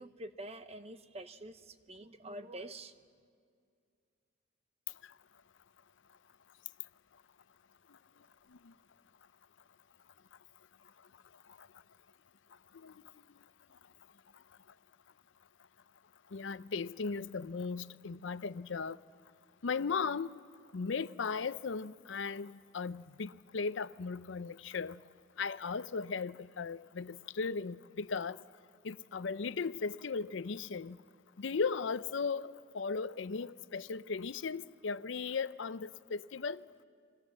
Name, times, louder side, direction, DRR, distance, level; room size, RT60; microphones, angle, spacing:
voice 1, 0.0-2.9, right 1 dB, 30° right, 0.8 m, -46 dB
voice 2, 16.3-19.0 19.6-20.4 20.7-25.0 25.4-28.4 28.8-31.0 31.4-36.6, left 5 dB, 65° left, 0.5 m, -37 dB
28.5 x 23.0 x 7.4 m
head